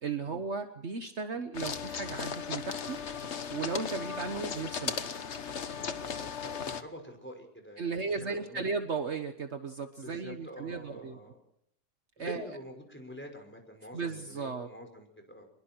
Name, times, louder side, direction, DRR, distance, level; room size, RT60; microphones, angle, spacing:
voice 1, 0.0-3.0 3.5-5.1 7.8-11.2 12.2-12.4 13.9-14.7, right 4 dB, 55° right, 7 dB, 1.5 m, -35 dB
sound 1, 1.5-6.8, left 6 dB, 55° left, 1.4 m, -36 dB
voice 2, 5.5-8.6 10.0-11.4 12.2-15.4, equal, 10° left, 4 dB, 5.6 m, -47 dB
26.0 x 22.0 x 4.6 m, 0.72 s
omnidirectional pair, 1.5 m